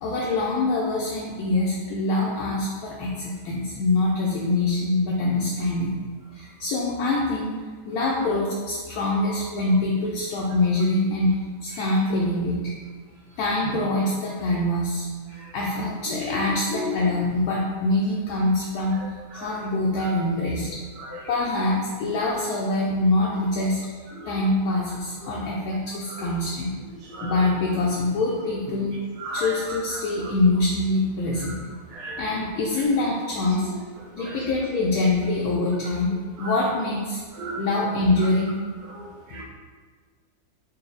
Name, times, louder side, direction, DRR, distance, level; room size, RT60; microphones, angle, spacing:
voice 1, 0.0-5.9 6.3-7.5 7.9-12.7 13.4-15.1 15.5-19.0 19.3-20.7 21.3-23.8 24.3-26.7 27.2-28.9 29.3-31.6 32.2-33.8 34.1-37.2 37.6-38.5, left 2 dB, 70° left, -4 dB, 1.0 m, -24 dB
voice 2, 16.1-16.4 16.7-17.0 19.4-19.5 21.0-21.2 24.2-24.3 27.0-27.3 29.2-29.5 29.9-30.3 31.9-32.2 33.6-33.7 34.3-34.4 36.4-36.5 37.4-37.6 38.9-39.4, equal, 70° right, -4 dB, 1.2 m, -34 dB
4.0 x 2.3 x 3.8 m, 1.5 s
omnidirectional pair, 1.8 m